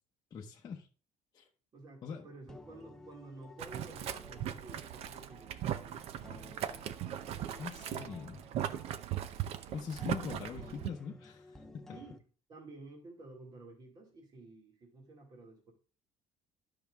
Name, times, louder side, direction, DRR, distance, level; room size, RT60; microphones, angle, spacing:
voice 1, 0.3-0.9 1.3-1.5 2.0-2.3 7.6-8.4 9.7-12.0, left 6 dB, 30° left, -2 dB, 1.0 m, -42 dB
voice 2, 1.7-6.7 11.9-12.2 12.5-15.7, right 2 dB, 30° right, 1 dB, 2.4 m, -52 dB
sound 1, 2.0-12.2, left 2 dB, 5° left, 0.7 m, -56 dB
Boiling, 3.6-10.9, right 10 dB, 55° right, 0.7 m, -39 dB
11.5 x 5.9 x 3.5 m, 0.36 s
cardioid pair, 160°, 13 cm